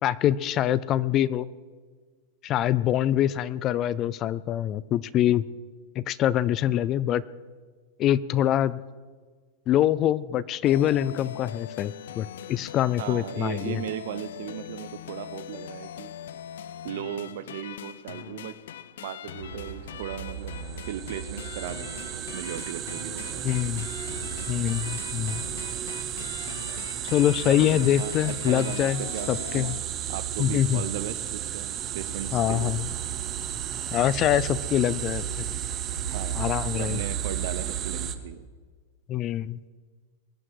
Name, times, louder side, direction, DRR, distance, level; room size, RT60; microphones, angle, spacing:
voice 1, 0.0-1.5 2.4-5.4 6.0-7.2 8.0-8.8 9.7-13.8 23.4-23.9 24.5-25.5 27.0-29.7 30.4-30.8 32.3-32.9 33.9-35.5 36.4-37.0 39.1-39.6, left 12 dB, 25° left, 19 dB, 0.3 m, -24 dB
sound 1, 10.6-29.8, left 9 dB, 80° left, 0.5 m, -42 dB
voice 2, 13.0-16.1 16.8-18.6 19.0-20.6 20.9-23.5 27.5-29.7 30.1-32.7 36.1-36.5 36.8-38.5, right 11 dB, 60° right, 14 dB, 0.8 m, -37 dB
Truck, 19.4-38.1, right 8 dB, 80° right, 3.8 m, -38 dB
sound 2, 20.4-38.2, right 10 dB, 25° right, 0.8 m, -35 dB
22.0 x 10.0 x 4.8 m, 1.5 s
supercardioid pair, 170°, 0 cm